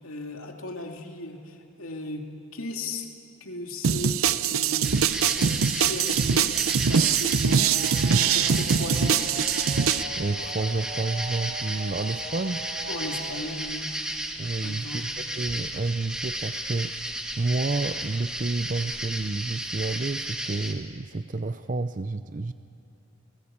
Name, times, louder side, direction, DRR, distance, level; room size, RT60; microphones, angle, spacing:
voice 1, 0.0-2.2 2.5-3.1 3.4-4.1 4.4-9.2 12.9-13.9 14.6-15.0, left 2 dB, 90° left, 3 dB, 2.6 m, -37 dB
sound 1, 3.8-10.0, right 7 dB, 85° right, 0.7 m, -23 dB
sound 2, 4.8-20.7, right 1 dB, 5° right, 1.7 m, -34 dB
sound 3, 7.4-13.4, right 2 dB, 60° right, 2.9 m, -40 dB
voice 2, 10.2-12.7 14.4-22.5, right 3 dB, 40° right, 11 dB, 0.5 m, -30 dB
29.5 x 20.0 x 8.6 m, 2.6 s
head